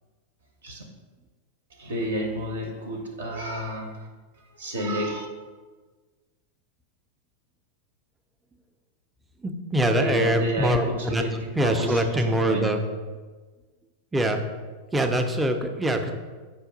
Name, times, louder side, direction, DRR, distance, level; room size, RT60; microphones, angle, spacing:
voice 1, 1.7-4.1 4.3-5.3 9.9-12.8, equal, 65° right, 3 dB, 0.5 m, -31 dB
voice 2, 9.4-11.2 11.6-12.8 14.1-14.4 14.9-16.1, right 1 dB, 10° right, 6 dB, 0.4 m, -23 dB
5.1 x 2.3 x 3.8 m, 1.4 s
figure-of-eight pair, 90°, 0 cm